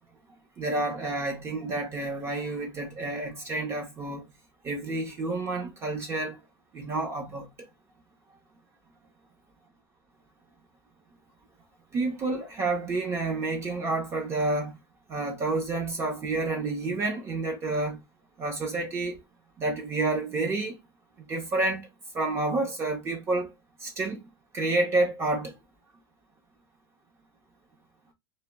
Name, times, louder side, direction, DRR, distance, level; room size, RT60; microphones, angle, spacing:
voice 1, 0.6-4.2 4.6-6.4 6.7-7.5 11.9-14.8 15.1-18.0 18.4-19.2 19.6-20.8 21.2-21.9 22.1-23.5 23.8-24.3 24.5-25.5, right 2 dB, 20° right, 0.6 m, -29 dB
2.2 x 2.0 x 3.3 m
supercardioid pair, 170°, 13 cm